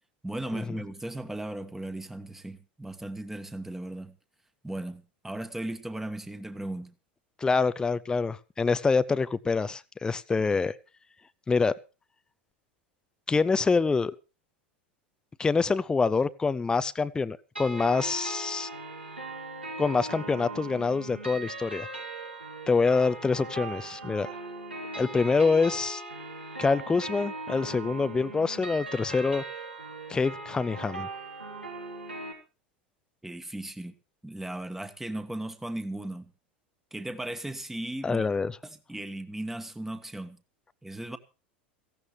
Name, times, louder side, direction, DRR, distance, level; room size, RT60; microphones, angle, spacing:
voice 1, 0.2-4.2 4.6-6.9 33.2-34.0 34.2-36.3 36.9-38.3 38.6-40.4 40.8-41.2, right 1 dB, 5° right, 1.5 m, -37 dB
voice 2, 7.4-10.7 11.5-11.7 13.3-14.2 15.4-18.7 19.8-21.9 22.7-24.3 25.0-26.0 26.6-29.4 30.1-31.1 38.0-38.5, left 4 dB, 15° left, 0.6 m, -26 dB
sound 1, 17.6-32.3, right 2 dB, 85° right, 3.6 m, -39 dB
18.0 x 15.5 x 3.2 m
figure-of-eight pair, 80°, 6 cm